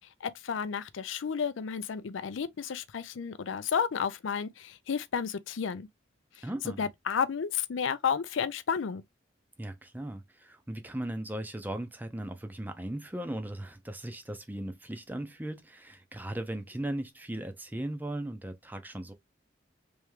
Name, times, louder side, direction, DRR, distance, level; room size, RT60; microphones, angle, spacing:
voice 1, 0.2-5.9 6.4-6.5 6.8-9.0, left 7 dB, 85° left, 0.5 m, -32 dB
voice 2, 6.4-6.9 9.6-19.1, right 1 dB, 10° right, 0.5 m, -37 dB
3.5 x 3.2 x 3.2 m
head